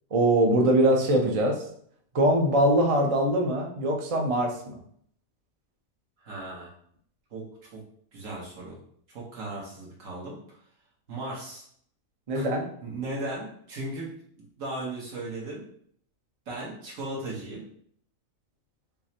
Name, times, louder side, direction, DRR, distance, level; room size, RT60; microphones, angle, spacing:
voice 1, 0.1-1.6 2.1-4.8 12.3-12.7, right 1 dB, 50° right, 2 dB, 0.4 m, -22 dB
voice 2, 6.2-6.7 7.3-7.8 8.1-8.8 9.1-10.4 11.1-11.6 12.3-12.4 12.8-15.6 16.5-17.6, right 2 dB, 75° right, -4 dB, 1.6 m, -37 dB
5.4 x 2.1 x 2.8 m, 0.63 s
omnidirectional pair, 1.4 m